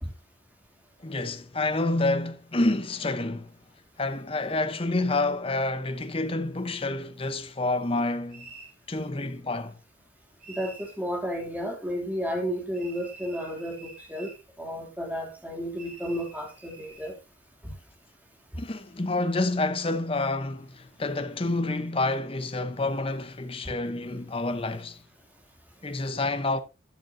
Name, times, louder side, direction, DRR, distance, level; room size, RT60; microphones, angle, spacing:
voice 1, 1.0-3.5 4.0-8.5 8.9-9.7 18.6-25.0 25.8-26.6, left 2 dB, 30° left, 0.8 m, -28 dB
sound 1, 8.3-8.8 10.4-11.0 12.7-14.4 15.8-17.2, right 3 dB, 45° right, 7.2 m, -48 dB
voice 2, 10.5-14.3 14.6-17.1 17.6-17.7, equal, 10° right, 2.8 m, -32 dB
12.0 x 9.4 x 2.7 m
head